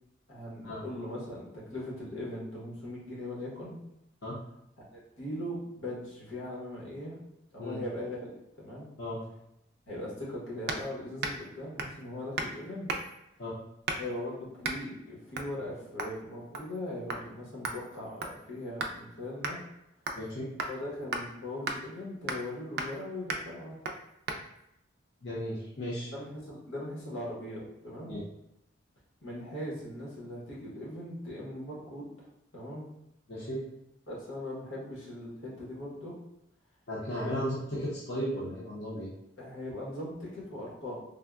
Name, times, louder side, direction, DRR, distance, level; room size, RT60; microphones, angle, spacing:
voice 1, 0.3-3.8 5.2-7.2 7.5-8.9 9.9-13.1 14.0-19.6 20.7-23.8 26.1-28.1 29.2-32.3 32.5-32.8 34.1-36.1 37.2-37.3 39.4-41.0, left 1 dB, 85° left, -5 dB, 1.1 m, -39 dB
sound 1, 10.7-10.9 11.2-11.5 11.8-12.0 12.4-12.6 12.9-13.2 13.9-14.2 14.6-14.8 15.3-15.5 16.0-16.2 16.5-16.8 17.1-17.2 17.6-19.0 19.4-19.6 20.1-20.3 20.6-20.7 21.1-21.2 21.7-21.8 22.3-22.5 22.8-23.0 23.3-23.5 23.8-24.0 24.3-24.4, right 3 dB, 50° right, 0.3 m, -35 dB
voice 2, 25.2-26.1 28.1-28.2 33.3-33.6 36.9-39.1, equal, 55° left, -7 dB, 0.7 m, -35 dB
3.5 x 2.1 x 2.3 m, 0.82 s
head